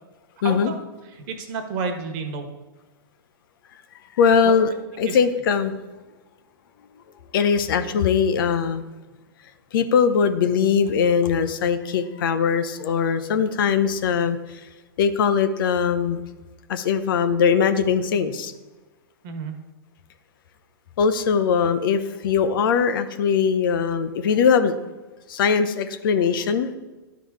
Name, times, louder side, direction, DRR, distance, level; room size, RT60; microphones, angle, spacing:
voice 1, 0.4-0.7 1.1-2.5 4.4-4.5 5.0-5.2 19.2-19.5, right 5 dB, 50° right, 5 dB, 1.4 m, -30 dB
voice 2, 4.2-4.7 5.0-5.8 7.3-8.8 9.7-14.6 15.0-16.2 16.7-18.5 21.0-24.7 25.3-26.7, left 6 dB, 65° left, 10 dB, 0.8 m, -21 dB
11.0 x 3.8 x 4.8 m, 1.2 s
hypercardioid pair, 115°, 12 cm